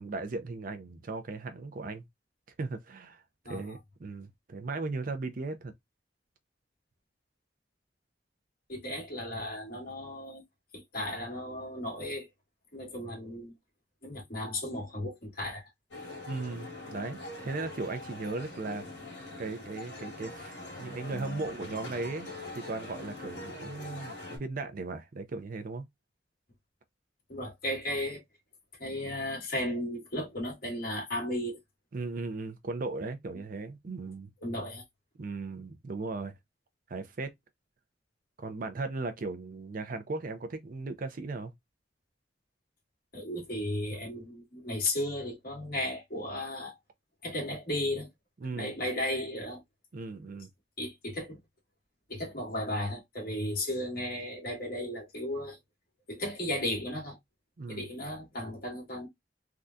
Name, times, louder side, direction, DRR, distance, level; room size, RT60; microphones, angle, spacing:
voice 1, 0.0-2.0 2.6-5.7 16.3-19.1 19.4-22.3 22.5-25.9 31.9-34.3 35.2-36.4 36.9-37.3 38.4-41.5 48.4-48.7 49.9-50.5 57.6-57.9, right 3 dB, 50° right, 0.5 m, -37 dB
voice 2, 3.5-3.8 8.7-10.4 10.7-12.3 12.7-13.5 14.0-15.7 27.3-28.2 28.8-31.6 34.4-34.8 43.1-46.7 47.2-48.1 48.5-49.6 50.8-51.4 52.1-55.6 56.1-57.2 57.7-59.1, left 1 dB, 55° left, 1.8 m, -35 dB
sound 1, 15.9-24.4, left 2 dB, 80° left, 1.7 m, -43 dB
3.5 x 2.3 x 2.6 m
head